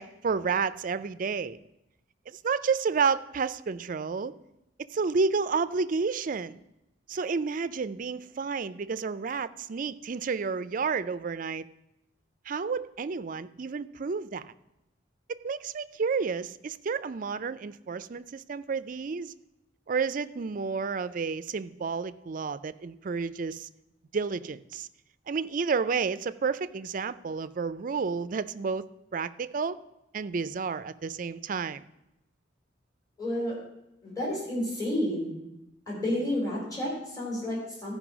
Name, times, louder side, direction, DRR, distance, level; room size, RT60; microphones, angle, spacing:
voice 1, 0.0-1.6 2.3-4.3 4.9-6.6 7.1-11.7 12.5-14.5 15.3-19.3 19.9-23.7 24.1-24.9 25.3-29.8 30.1-31.9, right 5 dB, 45° right, 14 dB, 0.4 m, -31 dB
voice 2, 33.2-33.6 34.0-35.3 35.9-37.9, left 1 dB, 20° left, -5 dB, 3.9 m, -30 dB
14.0 x 5.3 x 6.1 m, 0.89 s
head